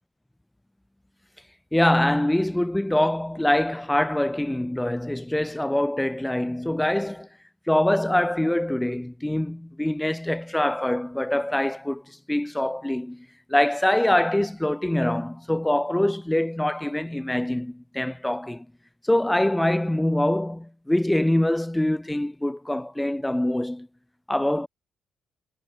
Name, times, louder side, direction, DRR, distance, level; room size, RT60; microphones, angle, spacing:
voice 1, 1.7-7.3 7.7-18.7 19.0-23.9 24.3-24.7, left 1 dB, 5° left, 1.9 m, -24 dB
cardioid pair, 90°, 0 cm